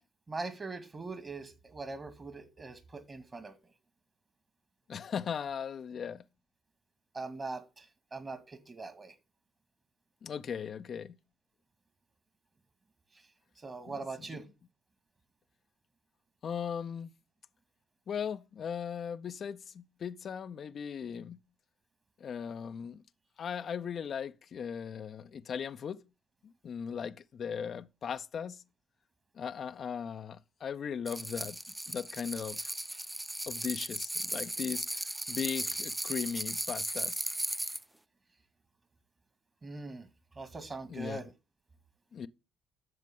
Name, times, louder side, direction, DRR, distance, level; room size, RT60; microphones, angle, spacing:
voice 1, 0.3-3.6 7.1-9.1 13.6-14.5 39.6-40.1 40.4-41.3, right 3 dB, 35° right, 1.9 m, -41 dB
voice 2, 4.9-6.2 10.2-11.2 13.9-14.0 14.3-14.4 16.4-17.1 18.1-21.4 22.2-23.0 23.4-26.0 26.6-28.6 29.3-31.6 31.9-32.7 33.5-37.3 40.9-41.2 42.1-42.3, left 7 dB, 50° left, 0.5 m, -38 dB
sound 1, 31.1-37.8, right 1 dB, 10° right, 0.4 m, -36 dB
11.0 x 7.3 x 3.7 m
hypercardioid pair, 45°, 0 cm